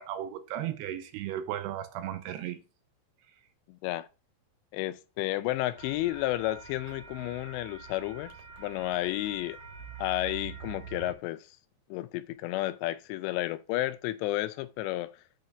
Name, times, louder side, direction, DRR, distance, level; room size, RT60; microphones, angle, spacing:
voice 1, 0.0-2.6, right 11 dB, 80° right, 2.6 m, -35 dB
voice 2, 3.7-4.1 4.7-8.3 8.6-9.6 10.0-11.5 11.9-15.1, left 16 dB, 85° left, 2.7 m, -32 dB
sound 1, 5.8-11.1, right 7 dB, 55° right, 1.7 m, -45 dB
8.2 x 3.4 x 6.5 m
omnidirectional pair, 5.1 m